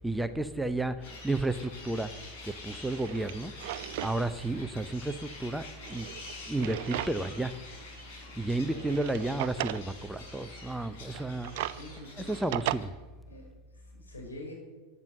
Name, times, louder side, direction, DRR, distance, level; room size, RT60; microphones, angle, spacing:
voice 1, 0.0-2.1 2.6-3.5 4.0-5.1 5.4-6.1 6.5-7.5 8.4-11.5 12.2-12.9, right 2 dB, 5° right, 11 dB, 0.7 m, -32 dB
sound 1, 1.0-12.9, left 3 dB, 50° left, 5.0 m, -47 dB
Drawer open or close, 2.1-2.2 2.8-4.2 4.5-4.6 5.7-7.4 7.8-7.9 8.7-9.9 11.0-12.8, right 15 dB, 50° right, 0.5 m, -37 dB
voice 2, 11.7-12.4 13.3-14.5, left 1 dB, 70° left, 1 dB, 5.8 m, -46 dB
14.5 x 9.7 x 7.7 m, 1.3 s
figure-of-eight pair, 90°, 0 cm